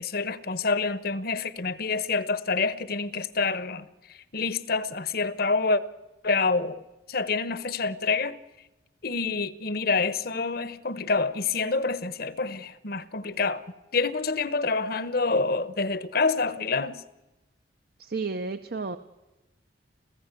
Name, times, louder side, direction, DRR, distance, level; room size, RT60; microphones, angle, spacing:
voice 1, 0.0-3.8 4.3-5.8 6.2-6.8 7.1-8.4 9.0-13.6 13.9-17.0, left 4 dB, 55° left, 1.0 m, -27 dB
voice 2, 18.0-19.0, right 4 dB, 55° right, 0.7 m, -32 dB
28.5 x 15.0 x 8.3 m
head